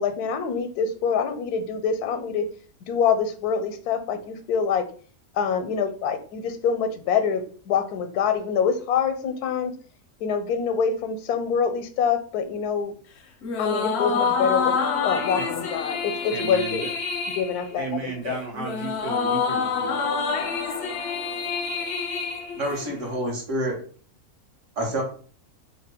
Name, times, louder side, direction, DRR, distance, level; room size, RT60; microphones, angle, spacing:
voice 1, 0.0-2.5 2.9-4.8 5.3-9.7 10.2-12.9 13.6-14.7 15.0-16.9 17.4-18.4, left 6 dB, 85° left, 8 dB, 1.1 m, -25 dB
sound 1, 13.4-23.1, left 5 dB, 65° left, 0.7 m, -27 dB
voice 2, 16.3-16.9 17.8-20.5, right 4 dB, 75° right, -1 dB, 1.6 m, -34 dB
voice 3, 22.6-23.8 24.8-25.0, right 1 dB, 55° right, 0 dB, 1.3 m, -27 dB
3.1 x 2.1 x 4.2 m, 0.43 s
omnidirectional pair, 1.6 m